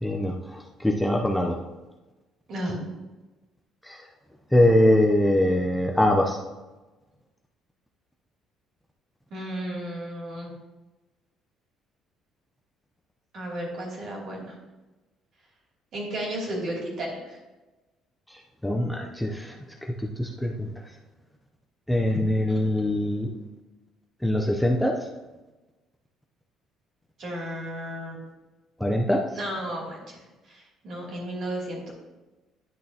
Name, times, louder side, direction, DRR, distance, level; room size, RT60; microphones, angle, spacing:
voice 1, 0.0-1.6 3.8-4.0 4.5-6.4 18.3-19.6 20.0-20.7 21.9-23.3 24.2-25.0 28.8-29.2, left 1 dB, 5° left, 1 dB, 0.5 m, -23 dB
voice 2, 2.5-2.8 9.3-10.5 13.3-14.5 15.9-17.4 22.5-22.6 27.2-28.2 29.3-30.2 30.4-31.9, right 1 dB, 50° right, -3 dB, 2.7 m, -33 dB
10.5 x 6.3 x 2.8 m, 1.1 s
cardioid pair, 160°, 0 cm